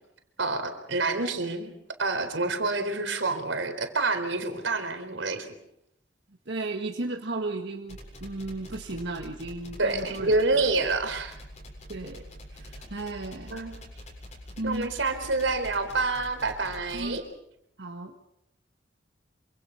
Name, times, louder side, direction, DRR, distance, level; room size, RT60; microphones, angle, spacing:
voice 1, 0.4-1.7 2.0-5.5 9.8-11.3 13.5-13.7 14.6-17.2, right 3 dB, 90° right, 7 dB, 4.1 m, -27 dB
voice 2, 6.5-10.6 11.9-13.6 14.6-15.2 16.9-17.2 17.8-18.1, right 2 dB, 65° right, 3 dB, 1.7 m, -35 dB
sound 1, 7.9-17.2, left 1 dB, 40° left, 7.6 m, -45 dB
27.0 x 25.5 x 5.7 m, 0.79 s
head